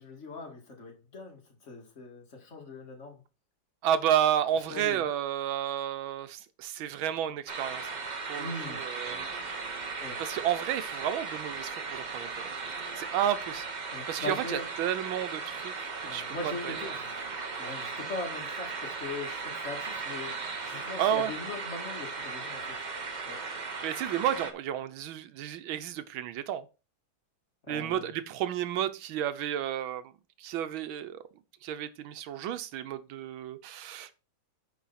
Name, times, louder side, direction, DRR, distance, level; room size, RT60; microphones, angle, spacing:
voice 1, 0.0-3.2 4.7-5.1 8.4-8.8 10.0-10.2 13.9-14.7 16.0-17.3 17.6-20.3 20.6-22.8 23.2-23.4 27.6-28.1, left 3 dB, 35° left, 2.4 m, -40 dB
voice 2, 3.8-7.9 8.3-9.2 10.2-12.5 13.0-16.8 21.0-21.3 23.8-26.7 27.7-30.1 30.4-31.2 31.6-34.2, right 10 dB, 90° right, 1.6 m, -31 dB
sound 1, 7.5-24.5, right 4 dB, 35° right, 0.7 m, -37 dB
10.0 x 4.8 x 4.2 m
omnidirectional pair, 2.1 m